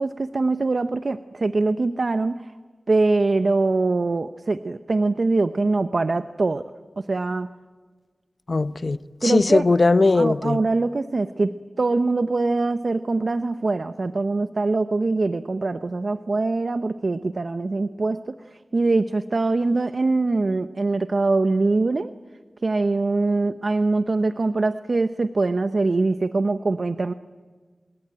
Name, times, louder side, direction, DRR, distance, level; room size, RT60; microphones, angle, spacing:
voice 1, 0.0-2.5 2.9-6.7 7.0-7.5 9.2-9.7 10.1-22.1 22.6-27.1, right 3 dB, 65° right, 10 dB, 0.8 m, -23 dB
voice 2, 8.5-10.6, left 3 dB, 60° left, 13 dB, 0.9 m, -19 dB
26.0 x 21.5 x 9.0 m, 1.5 s
cardioid pair, 45°, 0 cm